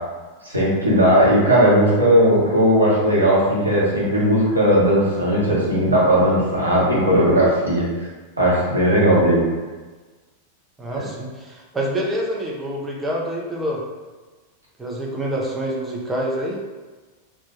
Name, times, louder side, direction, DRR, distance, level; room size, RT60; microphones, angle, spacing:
voice 1, 0.5-7.8 8.4-9.4, equal, 85° right, -7 dB, 0.9 m, -17 dB
voice 2, 10.8-13.8 14.8-16.6, right 1 dB, 10° right, -3 dB, 0.6 m, -26 dB
2.6 x 2.2 x 2.9 m, 1.3 s
figure-of-eight pair, 90°, 0 cm